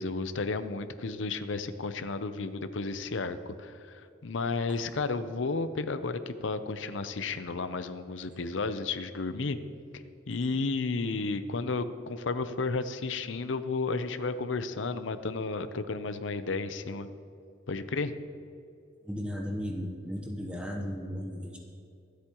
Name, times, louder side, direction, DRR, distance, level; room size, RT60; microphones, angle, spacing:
voice 1, 0.0-9.6 9.9-17.1 17.7-18.1, left 3 dB, 70° left, 11 dB, 0.7 m, -33 dB
voice 2, 19.0-21.6, equal, 5° right, 1 dB, 1.0 m, -35 dB
24.0 x 8.3 x 3.0 m, 2.6 s
head